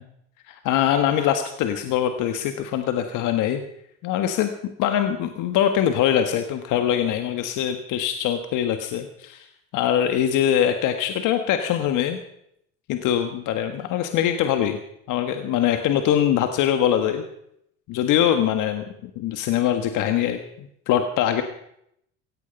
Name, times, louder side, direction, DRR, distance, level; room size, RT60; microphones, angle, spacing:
voice 1, 0.5-3.6 4.0-4.5 4.8-9.5 9.7-12.2 12.9-14.8 15.1-17.2 17.9-20.4 20.9-21.4, left 10 dB, 60° left, 7 dB, 1.6 m, -23 dB
17.0 x 15.0 x 5.4 m, 0.75 s
hypercardioid pair, 75°, 34 cm